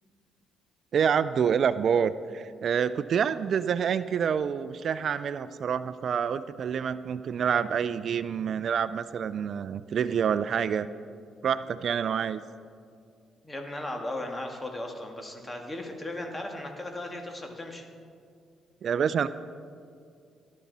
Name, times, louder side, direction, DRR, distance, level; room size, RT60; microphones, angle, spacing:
voice 1, 0.9-10.9 11.4-12.4 18.8-19.3, right 7 dB, 60° right, 14 dB, 0.4 m, -27 dB
voice 2, 13.4-17.8, left 1 dB, 20° left, 2 dB, 2.0 m, -36 dB
18.5 x 11.5 x 4.1 m, 2.3 s
cardioid pair, 90°, 0 cm